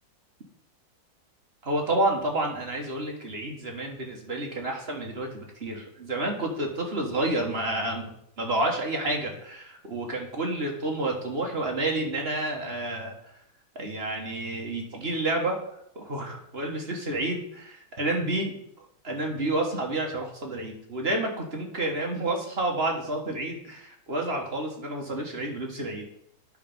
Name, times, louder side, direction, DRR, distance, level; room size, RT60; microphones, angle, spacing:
voice 1, 1.6-13.1 13.7-15.6 15.9-18.5 19.0-26.1, right 2 dB, 30° right, 1 dB, 1.5 m, -29 dB
9.3 x 5.6 x 5.5 m, 0.73 s
omnidirectional pair, 2.3 m